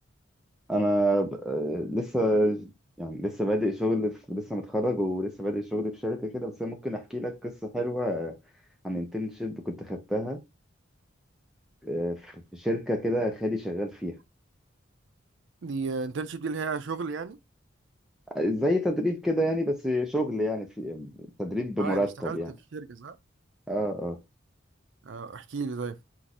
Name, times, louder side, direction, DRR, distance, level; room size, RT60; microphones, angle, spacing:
voice 1, 0.7-2.7 3.0-8.3 8.8-10.4 11.8-14.1 18.3-21.1 21.4-22.5 23.7-24.2, equal, ahead, 0.6 m, -28 dB
voice 2, 15.6-17.4 21.8-22.4 22.7-23.2 25.0-26.0, right 4 dB, 70° right, 0.5 m, -33 dB
4.5 x 2.6 x 4.1 m
head